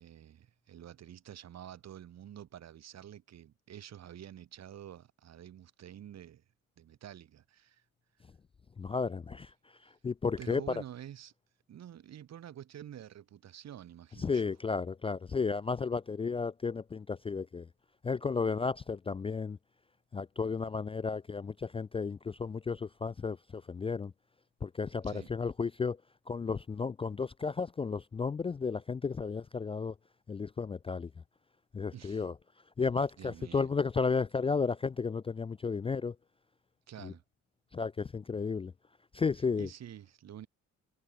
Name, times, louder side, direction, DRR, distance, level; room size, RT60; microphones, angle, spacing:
voice 1, 0.0-6.4 6.8-7.8 10.4-11.3 11.7-14.5 25.0-25.3 31.9-32.3 33.2-33.7 36.9-37.2 39.6-40.5, right 10 dB, 60° right, 1.6 m, -48 dB
voice 2, 8.8-9.5 10.0-10.6 14.2-17.7 18.0-19.6 20.1-24.1 24.6-26.0 26.3-29.9 30.3-31.1 31.7-32.3 32.8-36.1 37.0-37.1 37.7-38.7 39.1-39.7, left 5 dB, 20° left, 0.3 m, -33 dB
cardioid pair, 90°, 30 cm